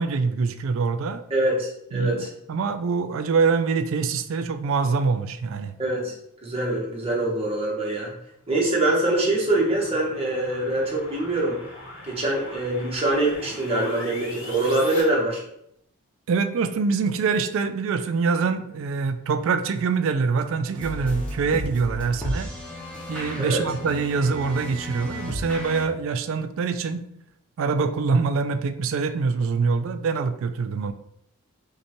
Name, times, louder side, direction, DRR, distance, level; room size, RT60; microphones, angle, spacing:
voice 1, 0.0-1.2 1.9-5.7 16.3-22.5 23.1-27.1 27.6-30.9, right 4 dB, 60° right, 10 dB, 0.3 m, -24 dB
voice 2, 1.3-2.3 5.8-6.1 6.4-8.1 8.5-11.6 12.0-15.4 23.4-23.6, right 2 dB, 25° right, -3 dB, 0.9 m, -24 dB
sound 1, 8.5-15.0, left 2 dB, 50° left, 0.9 m, -41 dB
sound 2, 20.7-25.8, equal, 5° left, 0.7 m, -34 dB
5.3 x 2.2 x 2.9 m, 0.73 s
head